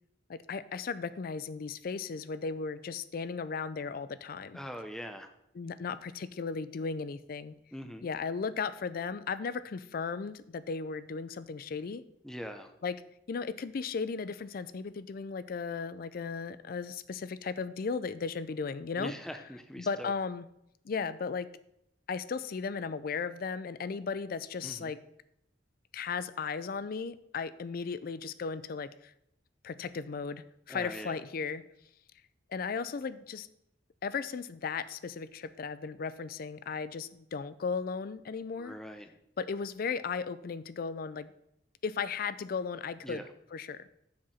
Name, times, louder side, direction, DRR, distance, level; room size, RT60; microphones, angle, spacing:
voice 1, 0.3-4.6 5.6-7.5 8.0-12.0 12.8-13.0 13.3-19.1 19.8-20.5 20.8-21.5 22.1-25.0 25.9-29.1 29.6-31.6 32.5-33.5 34.0-38.8 39.4-41.3 41.8-43.2 43.5-43.9, left 5 dB, 50° left, 15 dB, 0.4 m, -36 dB
voice 2, 4.5-5.3 7.7-8.1 12.2-12.7 19.0-20.1 24.6-24.9 30.7-31.2 38.6-39.1 43.0-43.3, equal, 5° left, 6 dB, 0.6 m, -42 dB
7.4 x 4.8 x 5.6 m, 0.78 s
head